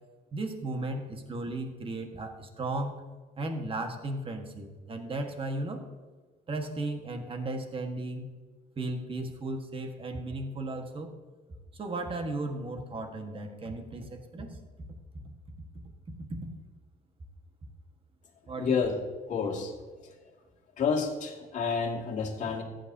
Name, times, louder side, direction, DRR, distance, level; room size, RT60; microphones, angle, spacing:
voice 1, 0.3-3.0 3.4-5.8 6.5-8.3 8.8-11.1 11.7-14.5 16.3-16.4 18.5-18.8, right 2 dB, 30° right, 5 dB, 1.5 m, -35 dB
voice 2, 18.6-18.9 19.3-19.7 20.0-20.1 20.8-22.6, left 5 dB, 45° left, -2 dB, 2.3 m, -29 dB
15.0 x 9.3 x 2.8 m, 1.4 s
cardioid pair, 110°, 17 cm